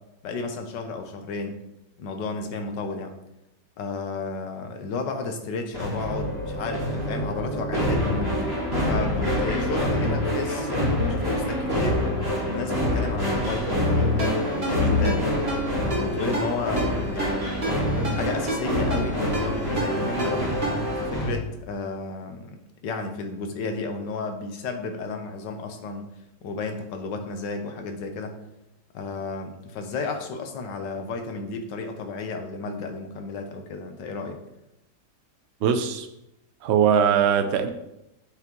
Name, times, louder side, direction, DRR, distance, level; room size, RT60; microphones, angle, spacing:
voice 1, 0.2-1.6 2.0-3.2 3.8-8.3 8.9-12.1 12.5-15.3 15.9-20.5 21.0-22.6 22.8-26.0 26.4-28.4 28.9-34.4, left 3 dB, 90° left, 5 dB, 1.5 m, -32 dB
sound 1, 5.7-21.4, left 1 dB, 15° right, 2.5 m, -26 dB
Ringtone, 14.2-21.0, right 1 dB, 35° right, 2.0 m, -32 dB
voice 2, 35.6-36.1 36.6-37.7, right 7 dB, 70° right, 8 dB, 0.6 m, -21 dB
7.9 x 5.8 x 3.0 m, 0.88 s
omnidirectional pair, 1.9 m